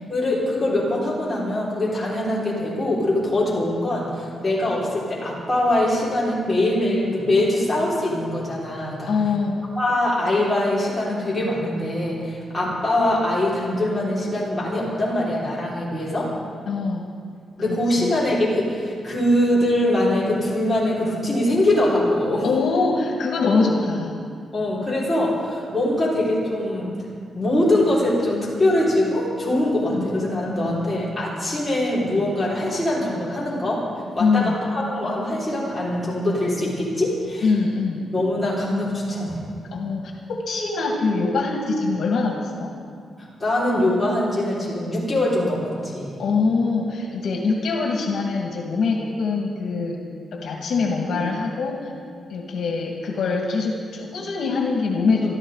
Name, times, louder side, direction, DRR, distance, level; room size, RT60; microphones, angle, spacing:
voice 1, 0.1-9.1 9.7-16.3 17.6-22.5 23.4-23.7 24.5-26.9 27.3-33.8 34.2-37.5 38.1-39.4 43.2-46.2, left 1 dB, 5° left, -8 dB, 5.2 m, -23 dB
voice 2, 9.1-9.6 12.6-12.7 16.7-17.1 17.6-18.2 22.4-24.2 29.9-30.1 30.5-30.9 34.2-34.6 37.4-38.0 39.7-42.8 46.2-50.0 50.3-51.9 52.3-55.3, left 4 dB, 70° left, 0 dB, 2.1 m, -23 dB
24.0 x 13.5 x 4.0 m, 2.2 s
wide cardioid pair, 150°, 0 cm